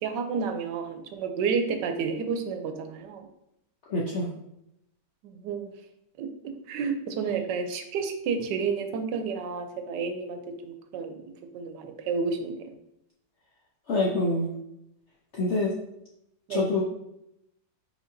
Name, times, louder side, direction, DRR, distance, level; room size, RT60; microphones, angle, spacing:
voice 1, 0.0-3.3 5.2-5.7 6.2-6.3 6.7-12.7 16.5-16.6, right 5 dB, 75° right, 6 dB, 1.2 m, -31 dB
voice 2, 3.9-4.3 13.9-14.5 15.3-15.7 16.5-16.8, left 2 dB, 85° left, -3 dB, 0.6 m, -25 dB
5.0 x 4.0 x 2.6 m, 0.83 s
omnidirectional pair, 2.0 m